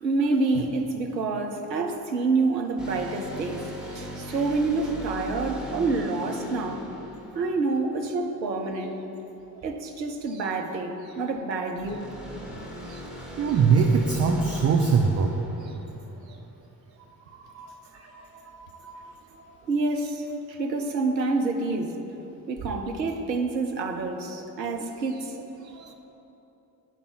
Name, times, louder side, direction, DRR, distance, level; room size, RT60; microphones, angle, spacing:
voice 1, 0.0-6.9 7.3-9.0 9.6-12.1 12.9-13.0 19.7-21.9 22.5-25.4 25.8-25.9, right 3 dB, 85° right, 4 dB, 0.6 m, -28 dB
sound 1, 2.8-8.3 11.8-16.5, equal, ahead, 1.5 m, -40 dB
voice 2, 13.4-15.4 17.3-19.1 25.7-25.9, right 5 dB, 30° right, 3 dB, 0.6 m, -24 dB
9.4 x 5.2 x 4.5 m, 3.0 s
figure-of-eight pair, 40°, 49 cm